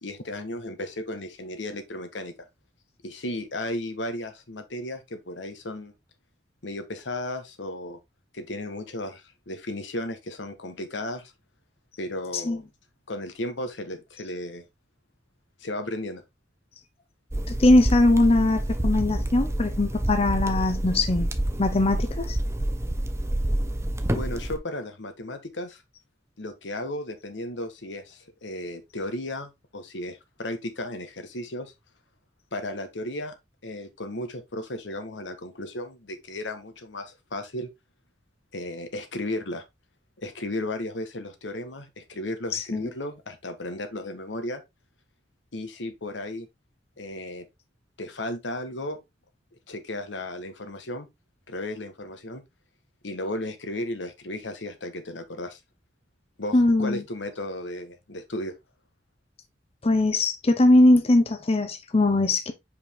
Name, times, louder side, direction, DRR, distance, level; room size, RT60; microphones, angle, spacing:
voice 1, 0.0-2.3 3.0-5.9 6.6-8.0 8.3-11.3 12.0-12.6 13.1-14.7 15.6-16.2 24.1-25.8 26.4-31.7 32.5-33.4 33.6-37.7 38.5-39.6 40.2-44.6 45.5-46.5 47.0-47.5 48.0-49.0 49.7-51.1 51.5-52.4 53.0-55.6 56.4-58.5, left 1 dB, 85° left, 1.3 m, -34 dB
sound 1, 17.3-24.6, right 1 dB, 15° right, 0.8 m, -28 dB
voice 2, 17.5-21.3 21.6-22.4 42.5-42.9 56.5-57.0 59.8-62.5, left 2 dB, 35° left, 0.8 m, -21 dB
5.2 x 5.1 x 3.5 m
head